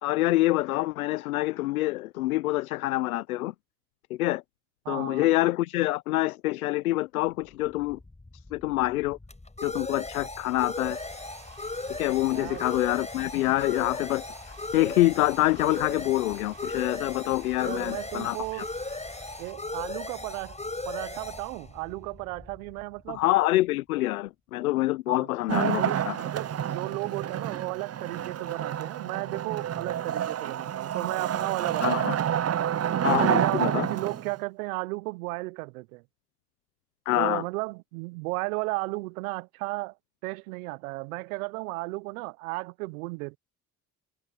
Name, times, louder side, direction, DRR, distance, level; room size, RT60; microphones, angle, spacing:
voice 1, 0.0-3.5 4.1-4.4 4.9-8.0 8.5-9.2 9.6-11.0 12.0-14.3 14.7-18.6 23.1-26.2 31.8-32.1 33.0-33.9 37.1-37.4, left 17 dB, 90° left, 0.9 m, -26 dB
voice 2, 4.8-5.3 12.3-12.7 17.6-18.7 19.4-20.6 20.9-23.2 25.1-25.3 25.8-32.1 33.1-36.0 37.2-40.0 40.2-43.4, right 25 dB, 80° right, 0.9 m, -34 dB
sound 1, 7.7-23.1, left 2 dB, 15° left, 6.6 m, -37 dB
sound 2, 10.9-19.5, right 10 dB, 55° right, 6.5 m, -54 dB
Wood, 25.5-34.4, right 10 dB, 35° right, 0.8 m, -29 dB
hypercardioid pair, 50°, 42 cm